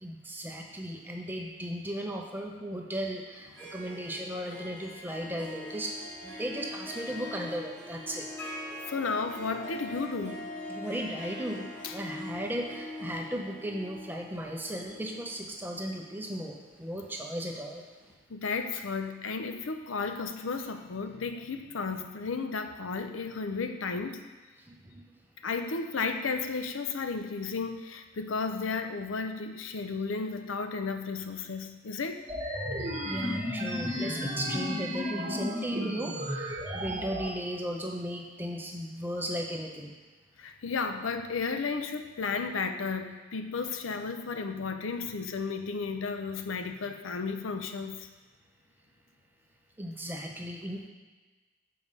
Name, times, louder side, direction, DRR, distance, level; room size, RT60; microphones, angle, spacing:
voice 1, 0.0-6.0 6.2-8.3 10.7-17.8 24.7-25.0 32.8-39.9 49.8-50.9, equal, 10° right, 1 dB, 0.6 m, -36 dB
Harp, 3.4-17.3, left 1 dB, 10° left, 1.5 m, -43 dB
voice 2, 8.9-10.4 11.8-11.9 18.3-24.3 25.4-32.2 40.4-48.1, left 4 dB, 90° left, 7 dB, 0.6 m, -33 dB
sound 1, 32.3-37.3, equal, 35° right, 1.2 m, -33 dB
7.1 x 4.8 x 5.4 m, 1.3 s
head